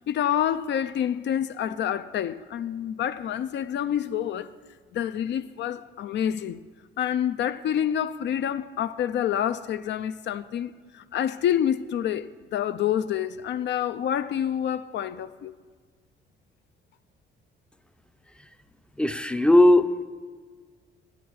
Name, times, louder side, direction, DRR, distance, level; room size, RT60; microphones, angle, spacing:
voice 1, 0.1-4.5 4.9-6.6 7.0-15.5, left 10 dB, 65° left, 0.4 m, -27 dB
voice 2, 19.0-20.0, left 1 dB, 5° left, 0.5 m, -18 dB
10.5 x 9.1 x 4.7 m
cardioid pair, 90°, 20 cm